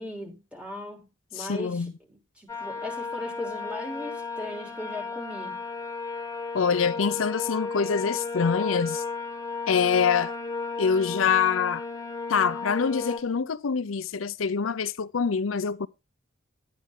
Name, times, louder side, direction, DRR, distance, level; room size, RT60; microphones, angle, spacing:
voice 1, 0.0-5.6, left 1 dB, 5° right, 3.3 m, -38 dB
voice 2, 1.3-1.9 6.5-9.0 9.7-10.3 10.8-11.8 12.3-15.9, left 6 dB, 90° left, 0.5 m, -25 dB
sound 1, 2.5-13.2, left 4 dB, 15° left, 1.4 m, -34 dB
12.0 x 9.3 x 3.7 m
head